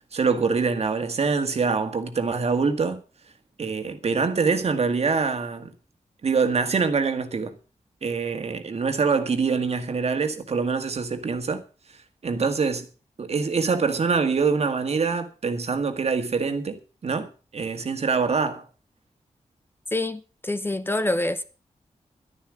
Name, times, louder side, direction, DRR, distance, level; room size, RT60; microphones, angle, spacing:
voice 1, 0.1-3.0 3.6-5.7 6.2-7.6 8.0-11.6 12.2-12.9 13.2-18.6, right 5 dB, 60° right, 1.9 m, -24 dB
voice 2, 19.9-21.4, left 1 dB, 15° left, 0.8 m, -26 dB
12.0 x 11.0 x 6.4 m
wide cardioid pair, 155°, 12 cm